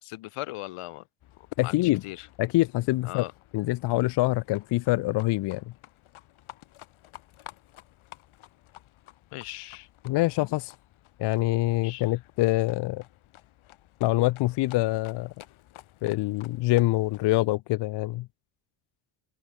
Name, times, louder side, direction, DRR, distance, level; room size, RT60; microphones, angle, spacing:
voice 1, 0.0-1.1 1.4-2.3 3.0-3.3 9.3-9.9 11.8-12.1, left 18 dB, 90° left, 2.1 m, -39 dB
Livestock farm animals working animals, 1.2-17.3, left 15 dB, 70° left, 6.8 m, -53 dB
voice 2, 1.6-2.0 2.4-3.2 3.5-5.6 10.0-10.7 11.2-13.0 14.0-15.3 16.0-18.3, left 18 dB, 55° left, 0.5 m, -25 dB
cardioid pair, 160°, 50 cm